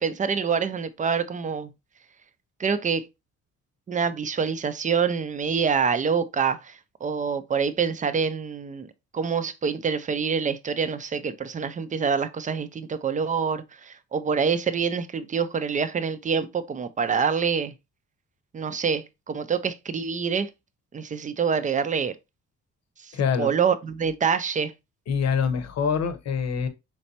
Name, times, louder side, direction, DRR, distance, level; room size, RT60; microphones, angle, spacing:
voice 1, 0.0-1.7 2.6-3.1 3.9-8.9 9.1-17.7 18.5-20.5 20.9-22.2 23.0-23.1 23.4-24.7, right 6 dB, 25° right, 0.4 m, -26 dB
voice 2, 23.1-23.5 25.1-26.7, left 6 dB, 60° left, 0.8 m, -25 dB
4.0 x 3.3 x 2.7 m
cardioid pair, 90°, 30 cm